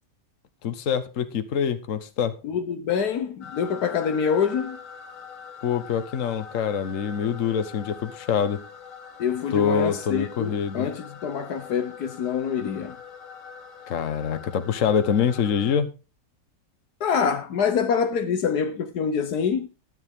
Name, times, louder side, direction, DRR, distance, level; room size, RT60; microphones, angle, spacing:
voice 1, 0.6-2.4 5.6-8.6 9.5-10.9 13.9-15.9, left 7 dB, 55° left, 1.3 m, -25 dB
voice 2, 2.4-4.8 9.2-13.0 17.0-19.7, left 7 dB, 70° left, 1.4 m, -25 dB
sound 1, 3.4-15.8, left 6 dB, 85° left, 1.9 m, -43 dB
13.0 x 9.4 x 3.6 m
omnidirectional pair, 1.8 m